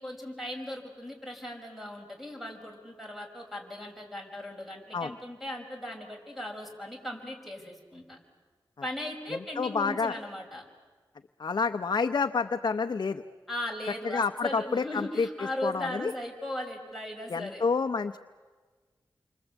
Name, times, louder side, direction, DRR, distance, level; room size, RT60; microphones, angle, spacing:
voice 1, 0.0-8.2 8.8-10.6 13.5-17.6, left 1 dB, ahead, 2 dB, 5.5 m, -38 dB
voice 2, 9.3-10.2 11.4-13.2 14.0-15.3 15.6-16.1 17.3-18.2, left 5 dB, 60° left, 6 dB, 0.7 m, -29 dB
29.0 x 24.5 x 8.2 m, 1.4 s
wide cardioid pair, 90°, 8 cm